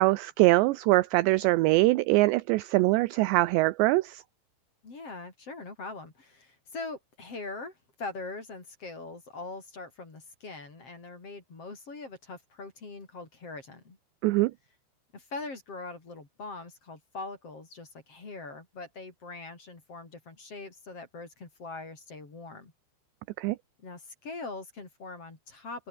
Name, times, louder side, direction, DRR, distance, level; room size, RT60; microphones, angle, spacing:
voice 1, 0.0-4.2 14.2-14.5 23.4-23.6, right 20 dB, 80° right, 2.7 m, -23 dB
voice 2, 4.8-14.0 15.1-22.7 23.8-25.9, left 3 dB, 30° left, 5.2 m, -42 dB
omnidirectional pair, 5.5 m